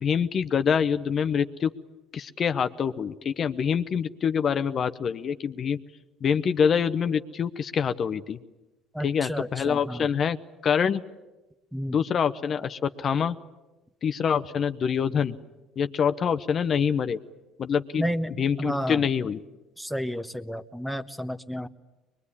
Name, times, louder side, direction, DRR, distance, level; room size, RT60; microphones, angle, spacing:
voice 1, 0.0-1.7 2.1-5.8 6.2-8.4 9.0-10.4 10.6-11.0 11.9-13.4 14.0-15.4 15.8-17.2 17.6-18.0 18.4-19.4, left 7 dB, 45° left, 11 dB, 0.8 m, -25 dB
voice 2, 8.9-10.1 11.7-12.0 18.0-19.1 19.8-21.7, equal, 5° right, 10 dB, 1.1 m, -31 dB
22.5 x 22.0 x 9.8 m, 1.1 s
supercardioid pair, 100°, 0 cm